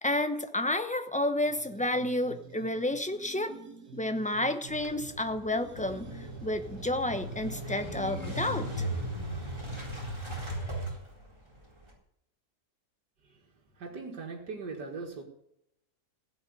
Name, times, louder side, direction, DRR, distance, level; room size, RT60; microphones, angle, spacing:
voice 1, 0.0-3.5 3.9-8.9, left 1 dB, 5° left, 8 dB, 0.6 m, -31 dB
sound 1, 1.5-9.0, right 6 dB, 65° right, 1.8 m, -49 dB
Motorcycle / Engine starting, 4.7-11.9, right 1 dB, 15° right, 3.9 m, -37 dB
voice 2, 13.7-15.2, right 4 dB, 90° right, 0 dB, 2.5 m, -40 dB
16.0 x 5.9 x 9.7 m, 0.77 s
omnidirectional pair, 1.7 m